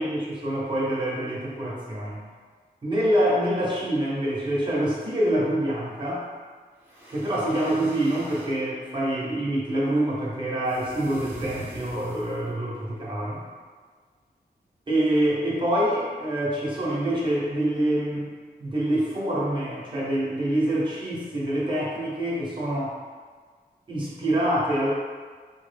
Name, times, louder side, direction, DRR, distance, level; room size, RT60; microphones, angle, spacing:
voice 1, 0.0-2.2 2.8-6.2 7.1-13.4 14.9-18.3 18.6-22.9 23.9-24.9, right 1 dB, 30° right, -6 dB, 1.1 m, -26 dB
sound 1, 6.8-8.6 10.7-12.5, equal, 10° right, 0.9 m, -44 dB
4.8 x 2.2 x 3.4 m, 1.5 s
wide cardioid pair, 120°, 17 cm